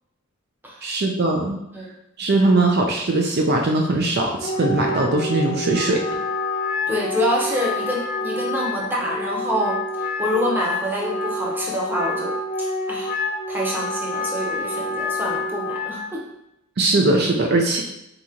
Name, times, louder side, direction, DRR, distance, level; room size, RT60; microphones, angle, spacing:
voice 1, 0.8-1.6 2.2-6.0 16.8-17.8, right 2 dB, 50° right, 1 dB, 0.5 m, -20 dB
Wind instrument woodwind instrument, 4.4-16.1, left 2 dB, 40° left, 0.7 m, -27 dB
voice 2, 6.9-9.8 10.2-13.2 13.5-16.2, equal, 10° right, -3 dB, 0.8 m, -26 dB
4.0 x 2.9 x 3.7 m, 0.85 s
head